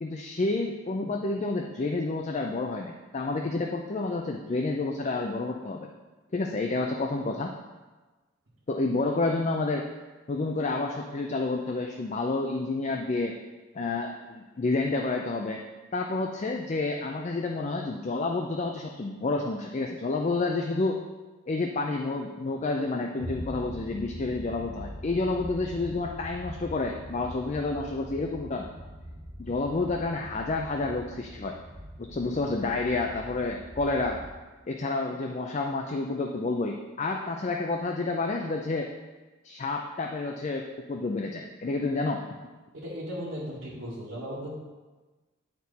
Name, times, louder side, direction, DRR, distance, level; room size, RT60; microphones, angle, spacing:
voice 1, 0.0-5.9 6.3-7.5 8.7-9.9 10.3-13.3 13.7-15.6 15.9-21.0 21.5-28.7 29.4-31.6 32.0-34.2 34.7-38.9 39.4-42.3, left 3 dB, 35° left, 2 dB, 0.4 m, -29 dB
sound 1, 23.2-34.4, equal, 40° right, 1.0 m, -42 dB
voice 2, 42.7-44.5, equal, 65° right, -10 dB, 1.8 m, -36 dB
9.5 x 4.4 x 4.1 m, 1.2 s
head